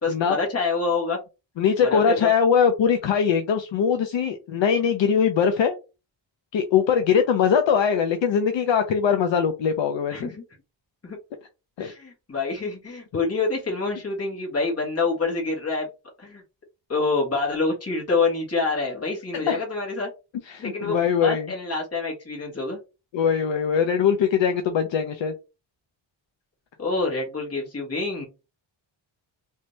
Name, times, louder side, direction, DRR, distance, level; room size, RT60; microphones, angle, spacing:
voice 1, 0.0-1.2 1.8-2.3 10.1-10.4 11.0-11.2 11.8-15.9 16.2-16.4 16.9-20.1 20.6-22.8 26.8-28.2, left 3 dB, 30° left, -2 dB, 1.6 m, -26 dB
voice 2, 1.6-5.8 6.5-10.3 11.8-11.9 19.3-19.6 20.5-21.5 23.1-25.3, left 7 dB, 70° left, 6 dB, 0.6 m, -21 dB
3.2 x 2.7 x 3.1 m, 0.28 s
wide cardioid pair, 135°, 47 cm